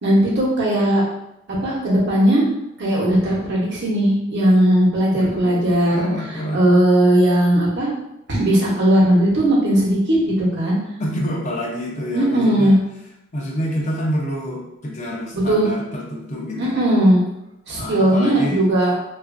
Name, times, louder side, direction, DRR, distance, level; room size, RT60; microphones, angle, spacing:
voice 1, 0.0-1.0 1.6-2.4 2.8-6.1 6.5-7.9 8.3-10.8 12.1-12.8 15.3-15.7 16.6-17.2 17.7-18.9, right 1 dB, 60° right, -5 dB, 0.9 m, -17 dB
voice 2, 5.1-6.6 11.0-12.8 13.3-16.8 17.7-18.6, equal, 35° left, -1 dB, 0.5 m, -27 dB
2.9 x 2.5 x 2.5 m, 0.86 s
head